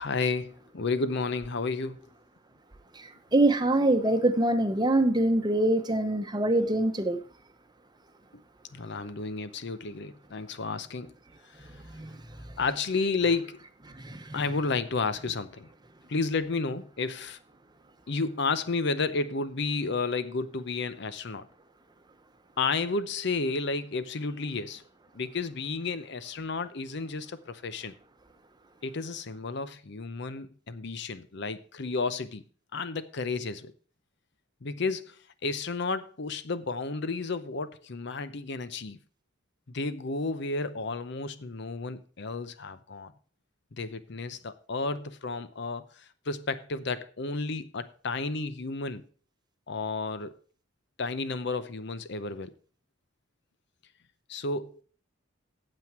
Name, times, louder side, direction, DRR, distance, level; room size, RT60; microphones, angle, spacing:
voice 1, 0.0-2.0 8.7-11.1 11.6-11.7 12.6-13.6 14.3-15.7 16.1-17.4 18.1-21.5 22.6-24.8 25.1-27.9 28.8-32.4 32.7-33.7 34.6-39.0 39.7-43.1 43.7-49.0 49.7-50.4 51.0-52.5 54.3-54.8, left 4 dB, 60° left, 0.7 m, -32 dB
voice 2, 2.9-7.2 11.6-12.2 13.9-14.5, right 1 dB, 20° right, 0.9 m, -25 dB
9.0 x 7.7 x 5.9 m
head